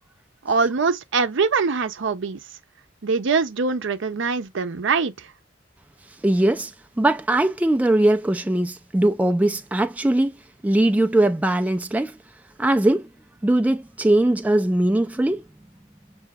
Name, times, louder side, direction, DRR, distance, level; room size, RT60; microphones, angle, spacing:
voice 1, 0.4-2.4 3.0-5.3, right 4 dB, 65° right, 0.6 m, -23 dB
voice 2, 6.2-6.7 7.0-10.4 10.6-12.2 12.6-13.1 13.4-15.4, right 1 dB, 10° right, 0.3 m, -20 dB
6.6 x 2.8 x 2.3 m
head